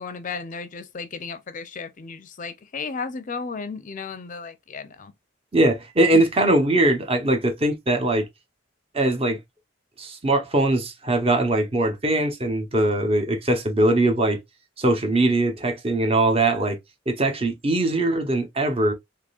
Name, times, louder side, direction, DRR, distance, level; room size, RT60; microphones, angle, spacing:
voice 1, 0.0-5.1 6.1-6.2, left 5 dB, 40° left, 0.5 m, -34 dB
voice 2, 5.5-8.2 8.9-9.4 10.0-14.4 14.8-16.8 17.1-18.9, right 2 dB, 30° right, 0.8 m, -21 dB
3.6 x 3.2 x 2.4 m
head